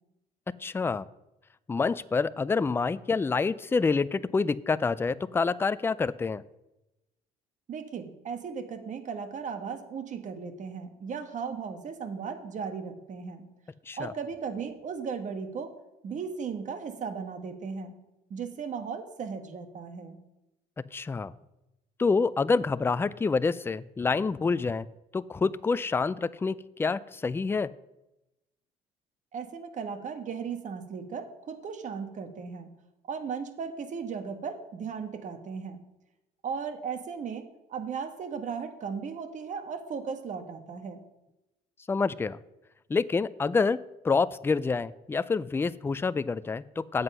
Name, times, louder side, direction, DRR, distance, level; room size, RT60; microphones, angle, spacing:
voice 1, 0.6-1.1 1.7-6.4 13.9-14.1 20.9-21.3 22.0-24.9 25.1-27.7 41.9-42.4 42.9-43.8 44.0-47.0, left 4 dB, 15° left, 16 dB, 0.3 m, -27 dB
voice 2, 7.7-13.4 14.0-15.7 16.0-17.9 18.3-20.2 29.3-32.7 33.1-35.8 36.4-41.0, right 6 dB, 45° right, 7 dB, 1.4 m, -36 dB
9.6 x 7.9 x 5.5 m, 0.93 s
cardioid pair, 110°, 17 cm